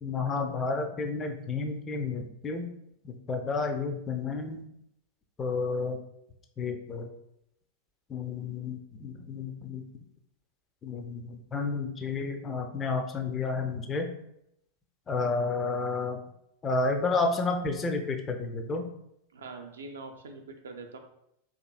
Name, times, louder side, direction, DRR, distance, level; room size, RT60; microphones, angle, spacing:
voice 1, 0.0-2.7 3.0-4.6 5.4-6.0 6.6-7.1 8.1-9.8 10.8-14.1 15.1-16.2 16.6-18.8, left 3 dB, 20° left, 5 dB, 0.4 m, -31 dB
voice 2, 19.3-21.0, right 3 dB, 65° right, 5 dB, 0.4 m, -43 dB
2.9 x 2.5 x 2.2 m, 0.78 s
figure-of-eight pair, 90°, 0 cm